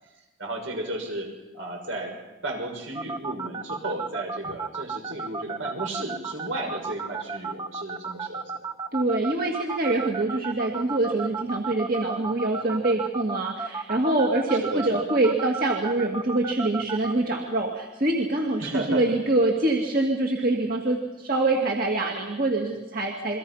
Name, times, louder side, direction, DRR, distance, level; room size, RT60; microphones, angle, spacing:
voice 1, 0.4-2.2 2.4-8.4 14.6-15.0 18.6-19.0, right 1 dB, 80° right, 2 dB, 6.4 m, -33 dB
sound 1, 2.9-17.1, right 4 dB, 20° right, 1.0 m, -32 dB
voice 2, 8.9-23.4, right 2 dB, 45° right, 0 dB, 2.3 m, -25 dB
28.5 x 23.0 x 5.7 m, 1.1 s
head